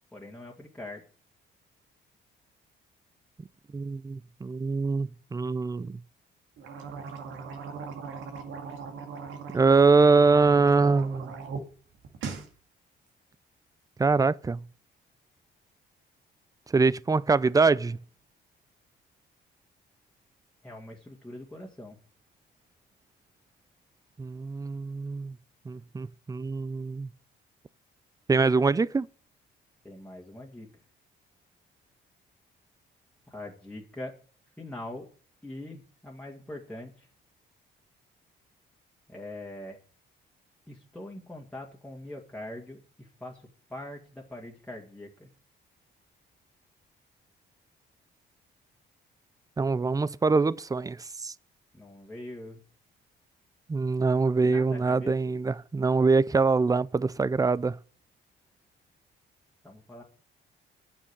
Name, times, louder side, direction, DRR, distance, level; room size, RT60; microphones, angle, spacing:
voice 1, 0.1-1.0 20.6-22.0 29.8-30.7 33.3-34.1 34.6-35.1 35.4-37.1 39.1-39.8 40.7-43.4 43.7-45.3 51.7-52.6 54.4-55.1 59.6-60.0, left 1 dB, 5° left, 2.2 m, -42 dB
voice 2, 3.7-6.0 9.5-11.3 14.0-14.6 16.7-18.0 24.2-25.3 25.7-27.1 28.3-29.1 49.6-51.3 53.7-57.8, right 4 dB, 15° right, 0.5 m, -24 dB
sound 1, 6.6-11.6 11.9-12.5, right 5 dB, 80° right, 2.0 m, -39 dB
9.2 x 6.5 x 8.4 m
cardioid pair, 90°, 20 cm